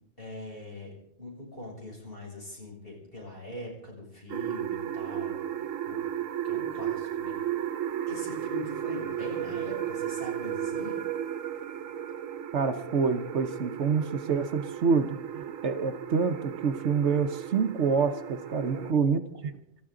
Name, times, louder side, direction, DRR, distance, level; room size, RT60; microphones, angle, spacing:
voice 1, 0.2-6.1 6.4-7.3 8.1-11.0 18.7-19.2, left 2 dB, 45° left, -2 dB, 6.7 m, -42 dB
sound 1, 4.3-18.9, right 10 dB, 85° right, 1.2 m, -34 dB
voice 2, 12.5-19.2, right 5 dB, 65° right, 8 dB, 1.1 m, -27 dB
28.5 x 13.5 x 3.8 m, 0.76 s
omnidirectional pair, 1.3 m